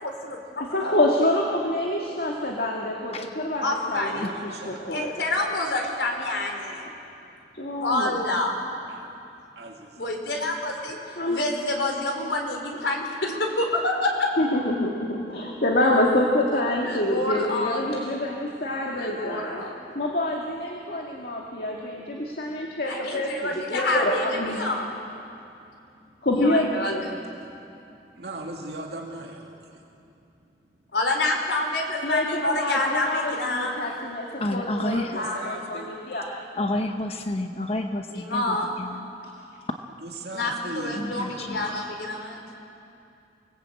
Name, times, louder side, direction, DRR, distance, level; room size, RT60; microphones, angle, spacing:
voice 1, 0.0-0.9 3.6-4.3 4.9-6.8 7.8-8.5 10.0-11.0 11.2-14.3 16.8-17.9 18.9-19.8 22.9-24.9 26.4-27.1 30.9-33.7 38.1-38.8 40.3-42.4, left 2 dB, 85° left, 2 dB, 4.5 m, -28 dB
voice 2, 0.6-5.1 6.9-7.0 7.5-8.2 11.2-11.4 14.4-19.6 19.9-24.6 26.2-27.1 32.0-36.3 39.2-39.3 41.6-41.7, left 1 dB, 60° left, -1 dB, 2.1 m, -26 dB
voice 3, 3.9-4.8 8.9-10.2 28.1-29.8 34.8-35.9 40.0-41.6, right 2 dB, 65° right, 0 dB, 2.4 m, -38 dB
voice 4, 34.4-35.2 36.6-39.1 40.9-41.7, left 1 dB, 35° left, 5 dB, 1.0 m, -30 dB
29.0 x 19.5 x 8.5 m, 2.7 s
head